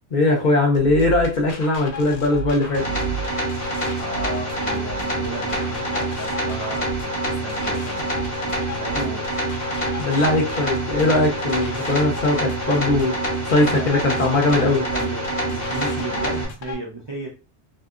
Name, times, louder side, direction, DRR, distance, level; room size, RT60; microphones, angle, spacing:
voice 1, 0.1-2.9 8.9-9.1 10.0-13.2 13.5-14.9, left 2 dB, 50° left, 1 dB, 0.7 m, -20 dB
sound 1, 0.7-16.7, right 1 dB, 85° left, 0.9 m, -35 dB
sound 2, 2.7-16.5, right 1 dB, 30° left, 1.0 m, -26 dB
voice 2, 3.9-8.1 8.7-9.3 13.7-17.3, right 2 dB, 40° right, -3 dB, 0.4 m, -35 dB
2.7 x 2.6 x 2.3 m, 0.31 s
omnidirectional pair, 1.1 m